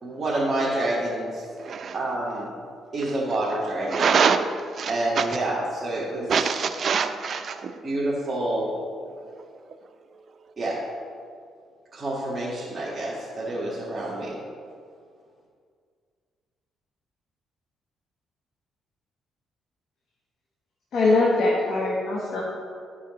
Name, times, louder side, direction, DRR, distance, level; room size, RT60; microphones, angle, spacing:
voice 1, 0.0-1.4 1.9-2.6 2.9-4.2 4.9-6.3 7.8-8.7 10.6-10.8 11.9-14.4, right 1 dB, 35° right, -7 dB, 1.7 m, -28 dB
voice 2, 1.6-2.0 3.9-4.5 4.8-4.9 5.2-5.3 6.3-7.7, right 6 dB, 50° right, 8 dB, 0.5 m, -23 dB
voice 3, 20.9-22.4, left 2 dB, 65° left, -3 dB, 1.1 m, -22 dB
12.0 x 4.9 x 3.1 m, 2.2 s
cardioid pair, 90°, 0 cm